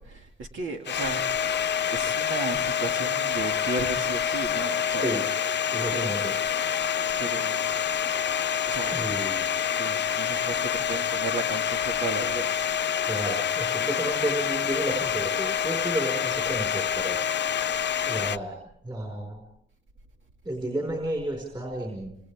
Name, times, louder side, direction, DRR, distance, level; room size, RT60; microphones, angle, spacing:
voice 1, 0.0-6.7 7.0-7.8 8.7-9.0 9.8-13.2, right 4 dB, 75° right, 2 dB, 2.3 m, -36 dB
Domestic sounds home sounds, 0.9-18.4, left 8 dB, 60° left, 0.8 m, -27 dB
voice 2, 5.7-6.3 8.9-9.5 13.1-17.2 18.0-18.6 18.8-19.4 20.4-22.2, right 1 dB, 20° right, 1 dB, 5.0 m, -32 dB
28.5 x 28.0 x 3.6 m, 0.71 s
wide cardioid pair, 140°, 21 cm